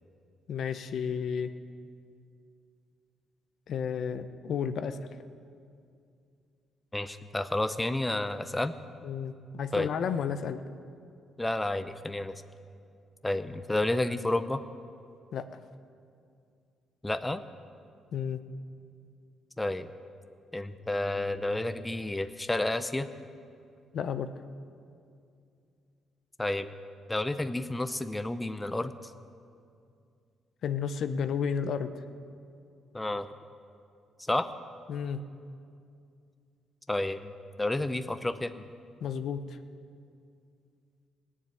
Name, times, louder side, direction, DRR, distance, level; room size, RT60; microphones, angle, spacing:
voice 1, 0.5-1.5 3.7-5.0 9.0-10.6 15.3-15.5 18.1-18.4 23.9-24.3 30.6-31.9 34.9-35.2 39.0-39.6, left 7 dB, 65° left, 10 dB, 0.7 m, -32 dB
voice 2, 6.9-8.7 9.7-9.9 11.4-12.3 13.2-14.6 17.0-17.4 19.6-19.9 20.5-23.1 26.4-26.7 27.1-29.1 32.9-33.3 34.3-34.5 36.9-37.3 37.6-38.7, left 1 dB, 10° left, 11 dB, 0.6 m, -30 dB
17.5 x 7.4 x 9.7 m, 2.4 s
cardioid pair, 90°, 0 cm